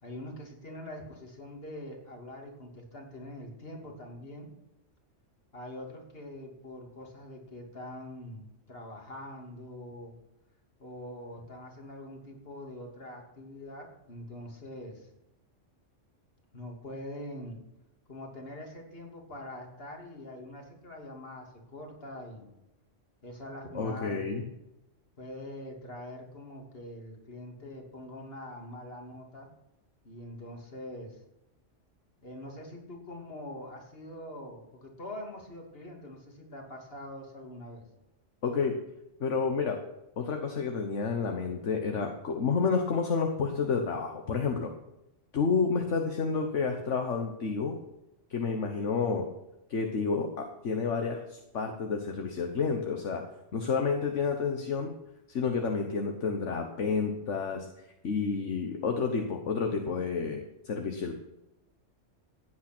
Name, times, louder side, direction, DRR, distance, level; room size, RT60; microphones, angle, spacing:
voice 1, 0.0-4.5 5.5-10.1 10.8-15.1 16.5-17.6 18.1-22.5 23.2-24.4 25.2-29.5 30.0-31.2 32.2-37.8, left 1 dB, 50° left, 1 dB, 3.0 m, -44 dB
voice 2, 23.7-24.4 38.4-38.8 39.2-39.8 40.2-44.7 45.3-47.7 48.3-49.2 49.7-53.2 53.5-54.9 55.3-57.7 58.0-61.1, left 5 dB, 70° left, 4 dB, 1.5 m, -30 dB
16.0 x 9.0 x 6.1 m, 0.92 s
omnidirectional pair, 1.3 m